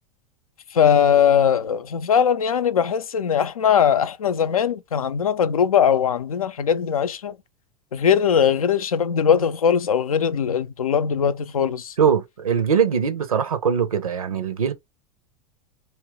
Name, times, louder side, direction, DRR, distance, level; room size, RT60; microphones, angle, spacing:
voice 1, 0.7-7.4 7.9-11.9, left 8 dB, 80° left, 0.5 m, -20 dB
voice 2, 12.0-14.7, right 7 dB, 80° right, 0.8 m, -21 dB
3.2 x 3.0 x 3.1 m
figure-of-eight pair, 85°, 18 cm